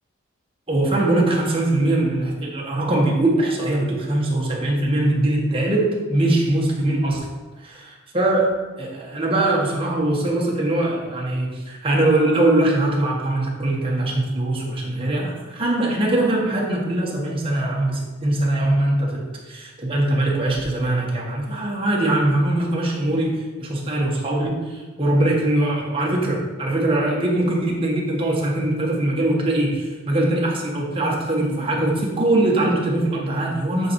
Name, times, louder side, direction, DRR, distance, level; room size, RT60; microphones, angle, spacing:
voice 1, 0.7-7.3 7.6-7.7 8.1-8.5 8.8-33.9, right 1 dB, 25° right, -3 dB, 1.4 m, -21 dB
9.3 x 4.0 x 4.6 m, 1.3 s
head